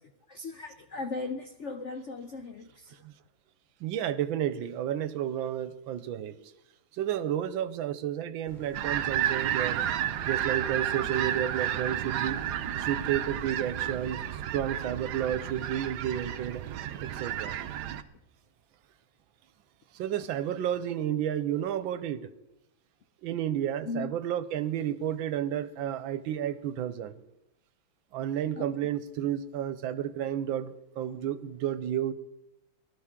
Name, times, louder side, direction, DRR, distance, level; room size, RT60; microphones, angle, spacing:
voice 1, 0.0-3.0 23.8-24.1 28.6-28.7, left 3 dB, 80° left, 0.6 m, -38 dB
voice 2, 3.8-6.3 6.9-9.8 10.3-12.4 12.7-16.6 17.0-17.6 19.9-22.3 23.2-27.2 28.1-32.1, right 10 dB, 85° right, 1.4 m, -31 dB
sound 1, 8.4-19.1 19.6-19.7, right 3 dB, 25° right, 1.8 m, -52 dB
sound 2, 8.7-18.0, right 10 dB, 65° right, 1.1 m, -32 dB
19.5 x 12.5 x 3.7 m
omnidirectional pair, 2.1 m